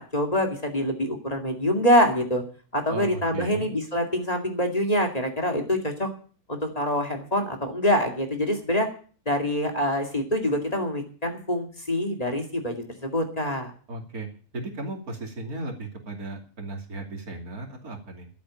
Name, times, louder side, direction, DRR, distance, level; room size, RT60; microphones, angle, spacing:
voice 1, 0.0-2.4 2.7-6.1 6.5-8.9 9.3-12.8 13.0-13.7, equal, 25° left, 3 dB, 2.4 m, -25 dB
voice 2, 2.9-3.7 13.9-14.3 14.5-18.3, right 2 dB, 80° right, 2 dB, 3.2 m, -36 dB
12.0 x 8.4 x 8.8 m, 0.41 s
omnidirectional pair, 1.5 m